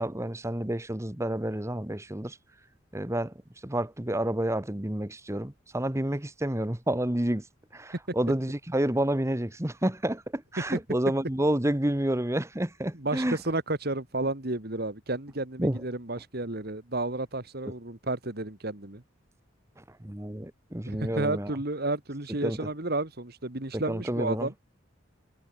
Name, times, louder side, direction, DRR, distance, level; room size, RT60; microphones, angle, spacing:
voice 1, 0.0-2.4 2.9-3.3 3.6-7.4 7.7-13.4 15.6-15.8 19.8-21.5 22.4-22.6 23.7-24.5, right 1 dB, 15° right, 1.1 m, -29 dB
voice 2, 12.9-19.0 20.9-24.5, right 2 dB, 55° right, 2.3 m, -32 dB
head